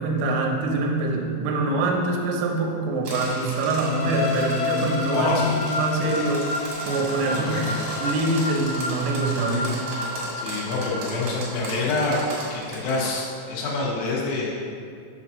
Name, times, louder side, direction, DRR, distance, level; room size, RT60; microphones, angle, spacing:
voice 1, 0.0-6.5 6.8-7.6 8.0-9.8, right 2 dB, 80° right, 1 dB, 3.1 m, -24 dB
sound 1, 3.0-13.1, right 1 dB, 60° right, 1.9 m, -36 dB
sound 2, 3.8-11.6, left 4 dB, 70° left, 2.5 m, -31 dB
voice 2, 5.1-5.6 7.2-7.6 10.4-12.2 12.5-14.5, left 3 dB, 90° left, -4 dB, 3.9 m, -27 dB
7.9 x 2.8 x 6.1 m, 2.3 s
omnidirectional pair, 5.9 m